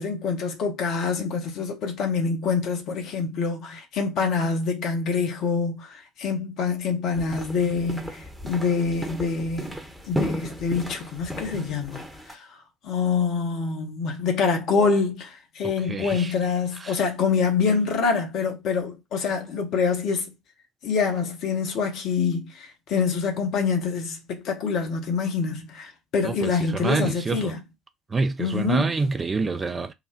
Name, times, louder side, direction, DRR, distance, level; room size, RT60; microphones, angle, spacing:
voice 1, 0.0-9.8 10.1-20.3 20.8-27.6 28.4-28.9, left 5 dB, 55° left, 1.0 m, -26 dB
sound 1, 7.1-12.3, equal, 5° right, 1.0 m, -35 dB
voice 2, 15.9-16.3 16.8-16.9 26.2-27.5 28.1-29.9, right 3 dB, 25° right, 0.5 m, -27 dB
3.9 x 2.2 x 4.4 m
figure-of-eight pair, 55°, 0 cm